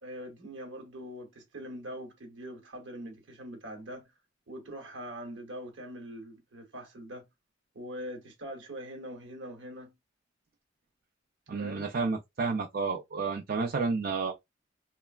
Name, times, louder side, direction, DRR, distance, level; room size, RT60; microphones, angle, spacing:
voice 1, 0.0-4.1 4.5-7.2 7.7-9.9 11.6-11.9, equal, 70° right, 1.0 m, -43 dB
voice 2, 11.5-14.3, right 4 dB, 50° right, 0.4 m, -31 dB
3.2 x 2.0 x 2.3 m
head